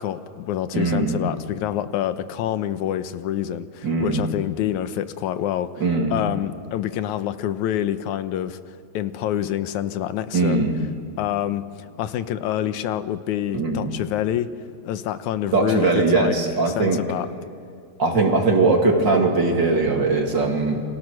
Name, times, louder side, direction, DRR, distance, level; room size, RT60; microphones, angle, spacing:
voice 1, 0.0-5.8 6.1-8.6 8.9-10.7 11.2-11.6 12.0-14.5 14.8-16.4 16.8-17.3, left 11 dB, 90° left, 12 dB, 2.3 m, -26 dB
voice 2, 0.7-1.1 3.8-4.2 5.8-6.1 10.3-10.7 13.5-13.9 15.5-17.0 18.0-20.8, right 3 dB, 40° right, 1 dB, 3.0 m, -20 dB
29.0 x 24.5 x 6.4 m, 2.3 s
omnidirectional pair, 3.3 m